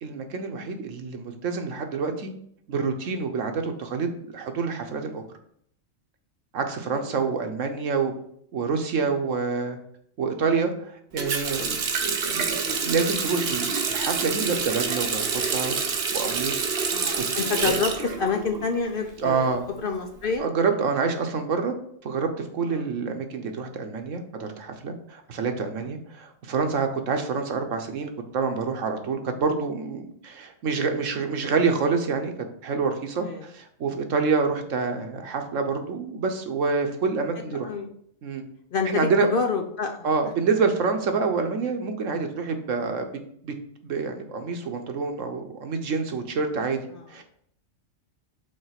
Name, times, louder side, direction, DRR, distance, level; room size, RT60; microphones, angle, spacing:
voice 1, 0.0-2.3 2.7-5.2 6.5-8.1 8.5-9.8 10.2-15.8 16.1-16.7 17.2-17.3 17.6-17.8 19.2-19.7 20.4-21.7 22.0-32.3 32.6-37.7 38.2-38.4 38.8-39.3 40.0-43.1 43.4-43.5 43.8-46.8 47.1-47.2, right 5 dB, 70° right, 5 dB, 1.2 m, -27 dB
Water tap faucet, 11.2-18.9 19.2-20.3, right 5 dB, 55° right, 1.0 m, -27 dB
voice 2, 16.9-20.5 22.7-22.9 25.8-25.9 33.2-33.4 33.8-34.0 37.5-37.9 38.7-40.0 46.9-47.0, left 5 dB, 55° left, 5 dB, 0.6 m, -28 dB
5.6 x 4.2 x 5.8 m, 0.68 s
omnidirectional pair, 1.4 m